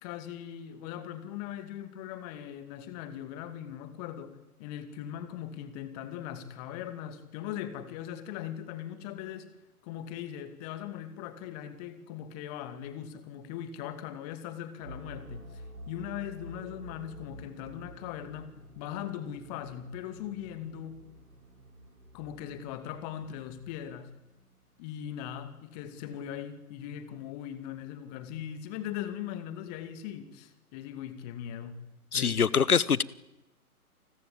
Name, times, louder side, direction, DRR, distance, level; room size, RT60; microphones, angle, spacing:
voice 1, 0.0-9.5 9.8-21.1 22.1-24.1 24.8-31.8 32.1-32.4, left 10 dB, 25° left, 11 dB, 2.6 m, -40 dB
sound 1, 14.8-24.6, right 1 dB, 70° right, 5.8 m, -50 dB
voice 2, 32.1-33.0, left 6 dB, 70° left, 22 dB, 1.2 m, -24 dB
29.0 x 20.5 x 8.7 m, 0.99 s
figure-of-eight pair, 125°, 45 cm